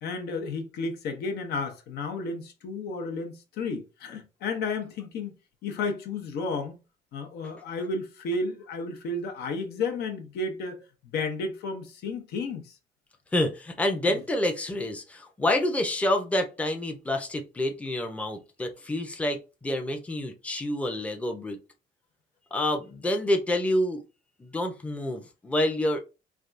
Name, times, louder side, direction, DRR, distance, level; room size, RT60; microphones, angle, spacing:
voice 1, 0.0-5.3 5.6-6.8 7.1-12.7 14.0-14.2, left 3 dB, 70° left, 0.7 m, -32 dB
voice 2, 13.3-21.6 22.5-24.0 24.4-26.0, left 1 dB, 10° left, 0.6 m, -28 dB
3.4 x 2.3 x 2.5 m
cardioid pair, 110°, 17 cm